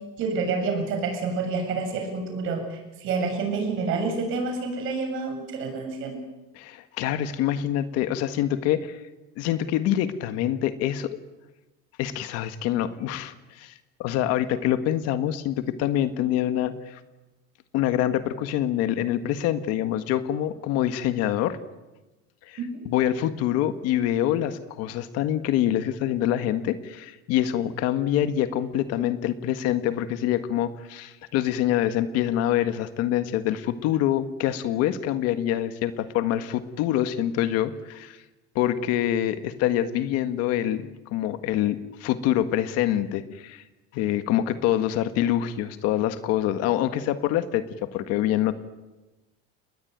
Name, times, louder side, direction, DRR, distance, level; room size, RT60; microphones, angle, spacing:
voice 1, 0.2-6.2 22.6-22.8, right 4 dB, 40° right, 3 dB, 7.4 m, -28 dB
voice 2, 6.6-9.0 9.4-11.2 12.0-17.0 17.7-21.6 22.5-38.2 38.6-43.6 43.9-47.6 47.9-48.5, left 11 dB, 55° left, 10 dB, 1.7 m, -25 dB
30.0 x 21.0 x 9.4 m, 1.1 s
cardioid pair, 180°, 30 cm